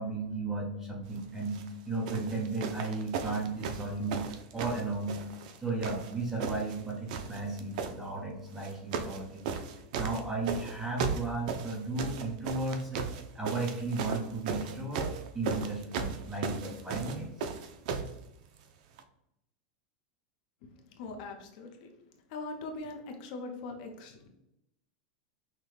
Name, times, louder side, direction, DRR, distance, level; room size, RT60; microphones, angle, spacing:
voice 1, 0.0-4.2 4.5-5.2 5.6-9.4 10.0-13.0 13.3-17.5, right 3 dB, 10° right, -2 dB, 0.9 m, -35 dB
sound 1, 1.4-1.7 2.1-5.6 5.8-6.8 7.1-7.9 8.6-9.2 9.4-18.1 19.0-19.1, right 5 dB, 60° right, 0.5 m, -36 dB
voice 2, 20.9-21.9 22.3-24.3, left 3 dB, 55° left, 4 dB, 0.7 m, -41 dB
5.8 x 2.2 x 3.2 m, 0.84 s
supercardioid pair, 160°, 5 cm